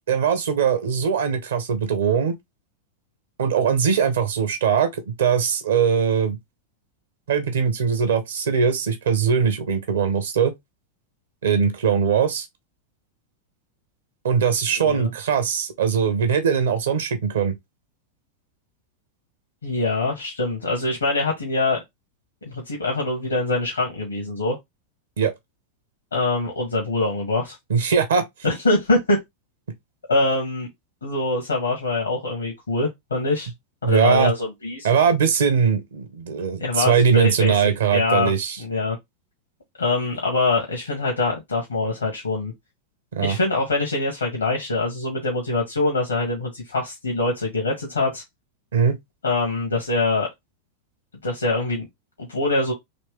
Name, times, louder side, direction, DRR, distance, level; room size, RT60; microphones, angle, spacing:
voice 1, 0.1-2.4 3.4-6.4 7.3-10.5 11.4-12.4 14.2-17.5 25.2-25.3 27.7-28.2 33.8-34.3 34.8-38.6 43.1-43.4 48.7-49.0, right 6 dB, 65° right, 1.1 m, -21 dB
voice 2, 14.8-15.1 19.6-21.8 22.4-24.6 26.1-27.6 28.4-29.2 30.1-30.7 31.0-33.5 33.9-34.9 36.6-38.3 38.6-39.0 39.8-42.5 43.2-48.2 49.2-50.3 51.2-51.9 52.2-52.7, left 2 dB, 75° left, 1.4 m, -24 dB
4.2 x 3.1 x 3.5 m
figure-of-eight pair, 90°, 0 cm